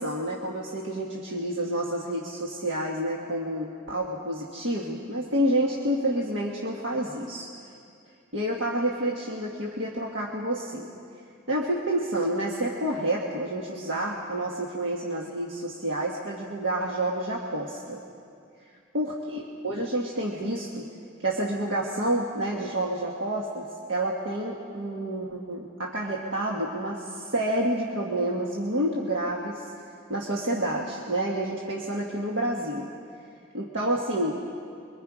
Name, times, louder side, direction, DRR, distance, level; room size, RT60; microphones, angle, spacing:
voice 1, 0.0-7.5 8.3-10.9 11.5-18.0 18.9-20.9 21.2-29.6 30.1-32.8 33.5-34.4, right 1 dB, 60° right, -2 dB, 1.6 m, -29 dB
25.5 x 23.5 x 5.0 m, 2.4 s
head